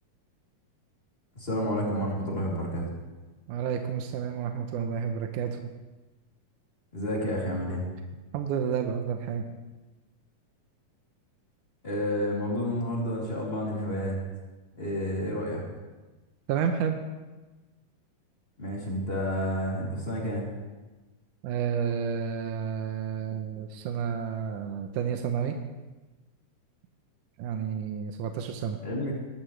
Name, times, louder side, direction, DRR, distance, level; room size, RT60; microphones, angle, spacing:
voice 1, 1.3-2.9 6.9-7.8 11.8-14.2 14.7-15.6 18.6-20.5 28.8-29.1, equal, 15° left, -4 dB, 2.9 m, -30 dB
voice 2, 3.5-5.6 8.3-9.4 16.5-17.0 21.4-25.6 27.4-28.8, right 7 dB, 75° right, 5 dB, 2.2 m, -30 dB
21.0 x 12.5 x 3.3 m, 1.2 s
omnidirectional pair, 4.0 m